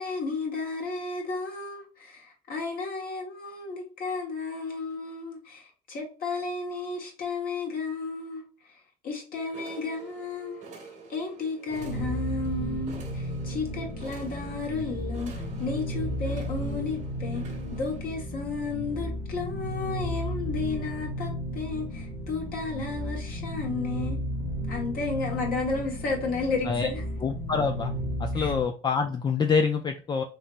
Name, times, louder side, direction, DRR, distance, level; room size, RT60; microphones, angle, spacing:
voice 1, 0.0-10.6 11.1-15.3 15.6-17.4 17.7-24.2 24.7-27.0 28.3-28.5, left 4 dB, 60° left, 1.5 m, -33 dB
sound 1, 9.3-18.0, right 5 dB, 45° right, 1.1 m, -47 dB
sound 2, 11.7-28.7, equal, 10° right, 1.0 m, -33 dB
voice 2, 27.2-27.9 28.2-30.2, left 5 dB, 25° left, 0.3 m, -26 dB
3.2 x 3.1 x 2.5 m
cardioid pair, 110°, 17 cm